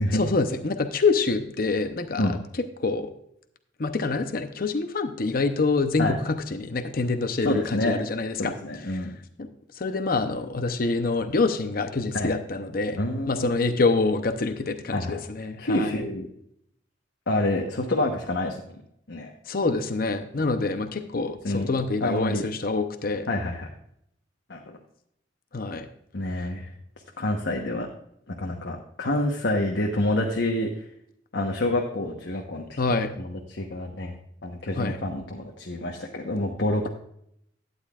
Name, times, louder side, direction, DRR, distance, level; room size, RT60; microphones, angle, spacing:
voice 1, 0.1-2.2 2.8-3.1 3.8-8.5 9.4-9.5 9.8-15.9 19.5-23.3 25.5-25.9 32.8-33.1 34.8-35.0, left 3 dB, 50° left, 8 dB, 0.7 m, -26 dB
voice 2, 7.4-8.0 8.4-9.1 12.1-12.3 13.0-13.5 14.9-15.2 15.6-16.3 17.3-18.6 19.1-19.3 21.4-21.7 22.0-22.4 23.3-23.7 24.5-24.8 26.1-26.7 27.2-27.9 28.4-30.7 31.3-32.8 33.2-34.1 34.4-36.9, left 1 dB, 75° left, 1 dB, 1.1 m, -27 dB
12.0 x 9.7 x 2.4 m, 0.72 s
head